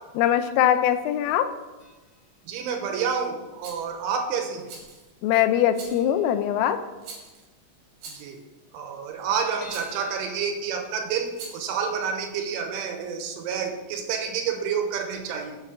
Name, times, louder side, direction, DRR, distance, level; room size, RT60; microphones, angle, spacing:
voice 1, 0.2-1.5 5.2-6.8, left 11 dB, 90° left, 11 dB, 3.3 m, -22 dB
sound 1, 1.8-2.3 2.6-2.7 3.6-4.3 4.6-4.8 5.1-5.2 5.5-5.6 5.9-7.2 7.6-7.7 7.9-8.0 8.2-8.3 8.8-11.4 11.9-12.0 12.4-12.5, right 1 dB, 45° left, 3.3 m, -50 dB
voice 2, 2.5-4.7 8.1-8.4 8.7-15.6, right 6 dB, 80° right, 4 dB, 3.3 m, -29 dB
Rattle, 3.6-3.9 4.7-5.1 5.7-6.1 7.0-7.5 8.0-8.4 9.7-10.0 11.3-11.7, right 4 dB, 65° right, 3.5 m, -42 dB
8.3 x 5.8 x 6.7 m, 1.2 s
omnidirectional pair, 5.7 m